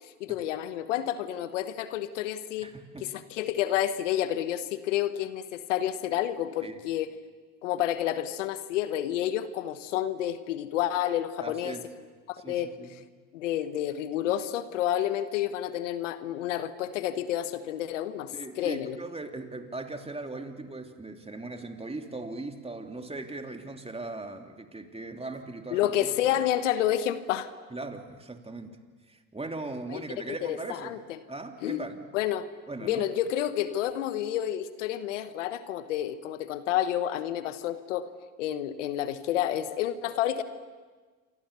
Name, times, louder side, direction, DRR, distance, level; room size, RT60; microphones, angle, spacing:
voice 1, 0.2-2.7 3.0-7.1 7.6-11.7 12.3-12.7 13.3-19.0 25.7-27.5 29.9-30.0 30.4-31.2 31.6-31.8 32.1-32.5 32.8-38.1 38.4-40.4, left 11 dB, 90° left, 12 dB, 1.3 m, -29 dB
voice 2, 2.6-3.1 6.6-6.8 11.4-11.8 12.4-13.0 18.3-26.4 27.7-28.8 29.1-30.9 31.3-32.0 32.7-33.1, right 2 dB, 15° right, 5 dB, 3.0 m, -39 dB
28.0 x 25.0 x 7.0 m, 1.4 s
hypercardioid pair, 70°, 36 cm